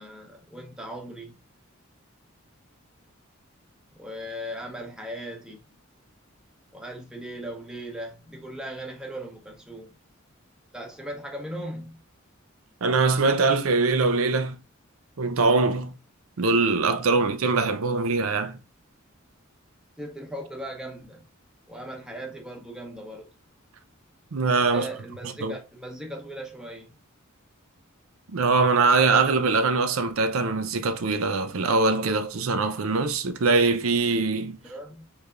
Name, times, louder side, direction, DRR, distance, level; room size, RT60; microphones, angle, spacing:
voice 1, 0.0-1.3 3.9-5.7 6.7-9.9 10.7-12.0 20.0-21.3 21.7-23.3 24.7-27.0 34.6-35.1, right 1 dB, 5° right, 0.8 m, -38 dB
voice 2, 12.8-14.6 15.2-16.0 16.4-18.6 24.3-24.9 25.4-25.5 28.3-34.6, right 3 dB, 75° right, 0.6 m, -22 dB
3.4 x 3.3 x 2.4 m
head